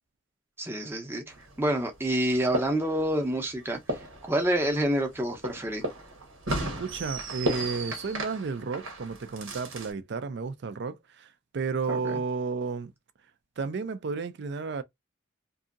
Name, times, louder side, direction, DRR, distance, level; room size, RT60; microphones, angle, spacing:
voice 1, 0.6-1.2 1.6-4.0 4.3-5.8 11.9-12.2, right 1 dB, 10° right, 0.6 m, -28 dB
sound 1, 1.3-9.9, right 1 dB, 85° right, 1.0 m, -36 dB
voice 2, 6.8-12.9 13.6-14.8, right 4 dB, 55° right, 0.4 m, -32 dB
2.7 x 2.5 x 2.5 m
head